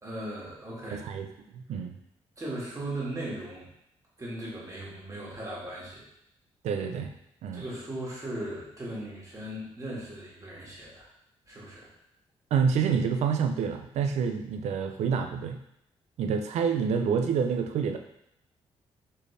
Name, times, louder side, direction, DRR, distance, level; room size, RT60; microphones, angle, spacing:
voice 1, 0.0-1.0 2.4-3.7 4.2-6.1 7.5-11.1 11.5-11.9, right 1 dB, 30° right, -6 dB, 1.8 m, -38 dB
voice 2, 0.9-1.3 1.5-1.9 6.6-7.1 7.4-7.6 12.5-15.6 16.2-18.0, right 6 dB, 85° right, 5 dB, 0.5 m, -27 dB
4.3 x 3.4 x 3.3 m, 0.77 s
cardioid pair, 90°, 11 cm